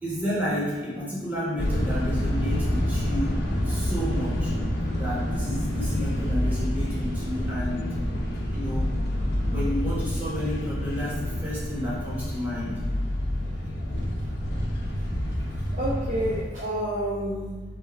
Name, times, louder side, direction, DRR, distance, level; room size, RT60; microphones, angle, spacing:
voice 1, 0.0-4.5 4.9-7.9 8.5-8.9 9.5-12.7, equal, 10° right, -9 dB, 1.4 m, -31 dB
sound 1, 1.6-16.4, left 1 dB, 70° left, 1.0 m, -28 dB
voice 2, 15.0-17.6, right 1 dB, 40° right, -7 dB, 0.7 m, -30 dB
3.5 x 3.3 x 4.5 m, 1.3 s
head